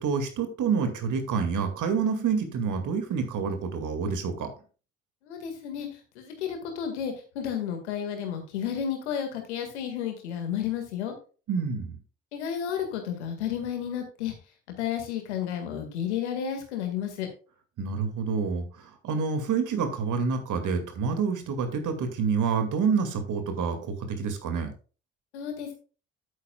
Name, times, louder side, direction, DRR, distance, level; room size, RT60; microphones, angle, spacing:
voice 1, 0.0-4.5 11.5-12.0 17.8-24.7, right 5 dB, 65° right, 7 dB, 2.2 m, -28 dB
voice 2, 5.3-5.9 6.2-11.1 12.3-14.4 14.8-17.3 25.3-25.7, left 9 dB, 90° left, 5 dB, 1.9 m, -32 dB
10.5 x 8.9 x 2.3 m, 0.35 s
hypercardioid pair, 45°, 34 cm